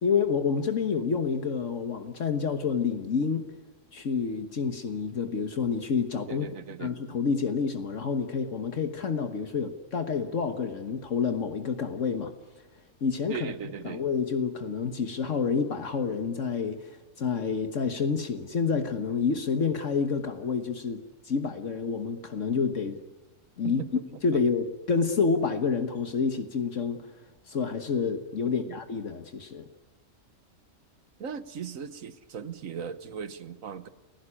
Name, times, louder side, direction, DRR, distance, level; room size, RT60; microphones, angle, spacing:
voice 1, 0.0-3.5 3.9-6.5 6.8-12.3 13.0-13.5 13.8-23.0 23.6-27.1 27.5-29.6, left 5 dB, 70° left, 7 dB, 1.6 m, -28 dB
voice 2, 6.3-7.0 13.3-14.0 23.6-24.1 28.4-28.8 31.2-33.9, right 7 dB, 90° right, 13 dB, 1.6 m, -38 dB
29.5 x 16.5 x 9.9 m, 1.2 s
omnidirectional pair, 1.4 m